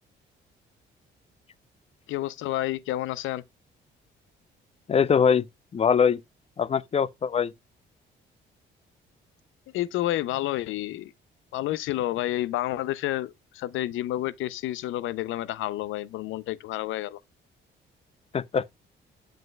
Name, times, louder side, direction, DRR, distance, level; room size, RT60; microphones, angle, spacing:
voice 1, 2.1-3.4 9.7-11.1 11.5-17.2, left 14 dB, 85° left, 0.5 m, -30 dB
voice 2, 4.9-5.5 5.7-6.2 6.6-7.5 18.3-18.6, left 7 dB, 30° left, 0.5 m, -22 dB
7.7 x 7.6 x 2.2 m
cardioid pair, 90°, 20 cm